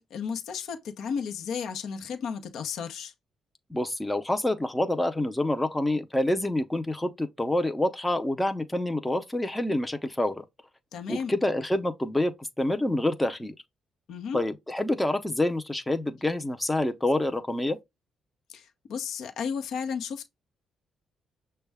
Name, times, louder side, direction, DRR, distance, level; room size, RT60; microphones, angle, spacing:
voice 1, 0.0-3.1 10.9-11.3 14.1-14.4 18.5-20.3, left 6 dB, 75° left, 0.7 m, -33 dB
voice 2, 3.7-10.4 11.1-13.5 14.3-17.8, left 1 dB, 10° left, 0.6 m, -27 dB
6.2 x 2.2 x 3.4 m
cardioid pair, 90°, 0 cm